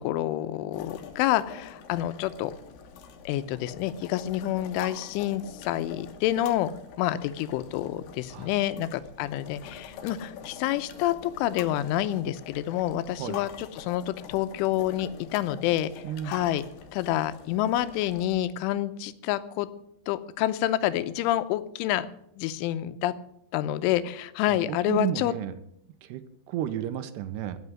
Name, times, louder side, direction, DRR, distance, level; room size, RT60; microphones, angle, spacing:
voice 1, 0.0-2.5 3.3-6.7 7.0-15.9 16.3-16.6 16.9-19.7 20.1-22.1 22.4-23.1 23.5-25.3, left 13 dB, 85° left, 13 dB, 3.2 m, -28 dB
sound 1, 0.7-18.4, left 6 dB, 70° left, 2.3 m, -45 dB
voice 2, 16.0-16.5 24.5-25.5 26.0-27.6, right 11 dB, 75° right, 10 dB, 2.6 m, -33 dB
16.5 x 6.0 x 9.5 m, 0.74 s
omnidirectional pair, 5.5 m